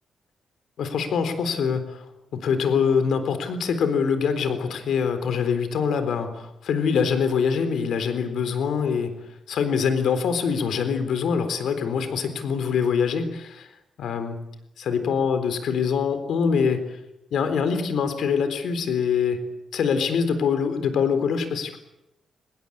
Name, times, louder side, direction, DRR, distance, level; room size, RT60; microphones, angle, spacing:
voice 1, 0.8-2.1 2.3-9.1 9.5-13.7 14.0-14.4 14.8-16.8 17.3-19.4 19.7-21.8, left 6 dB, 70° left, 10 dB, 3.8 m, -24 dB
25.0 x 21.0 x 8.7 m, 0.87 s
wide cardioid pair, 175°, 0 cm